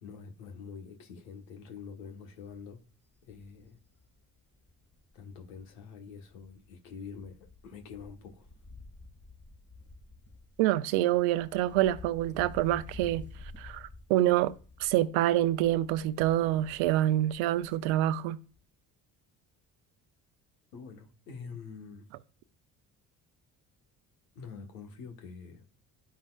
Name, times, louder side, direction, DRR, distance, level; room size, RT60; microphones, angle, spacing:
voice 1, 0.0-2.8 3.2-3.8 5.1-8.5 20.7-22.1 24.3-25.6, left 5 dB, 80° left, 1.4 m, -46 dB
Wind, 1.4-1.5 1.9-2.0 2.3-5.8 6.1-18.3 18.5-18.6, left 2 dB, 30° left, 2.3 m, -51 dB
voice 2, 10.6-13.3 13.6-14.5 14.8-18.4, right 14 dB, 75° right, 0.7 m, -26 dB
11.5 x 5.6 x 2.4 m
hypercardioid pair, 50°, 48 cm